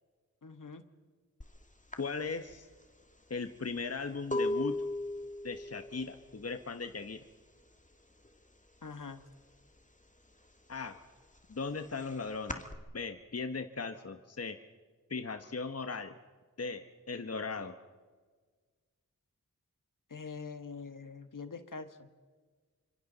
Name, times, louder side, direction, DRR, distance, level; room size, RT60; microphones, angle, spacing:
voice 1, 0.4-0.8 8.8-9.2 20.1-22.1, left 4 dB, 65° left, 9 dB, 1.5 m, -44 dB
sound 1, 1.4-1.6 1.9-7.6 7.9-8.4 8.7-9.8 10.2-12.8, left 2 dB, 20° left, 1.8 m, -38 dB
voice 2, 2.0-2.7 3.3-4.8 5.4-7.2 10.7-11.0 11.5-12.6 12.9-14.6 15.1-16.2 16.6-17.7, left 4 dB, 45° left, 7 dB, 1.1 m, -38 dB
28.0 x 25.5 x 4.0 m, 1.5 s
cardioid pair, 45°, 34 cm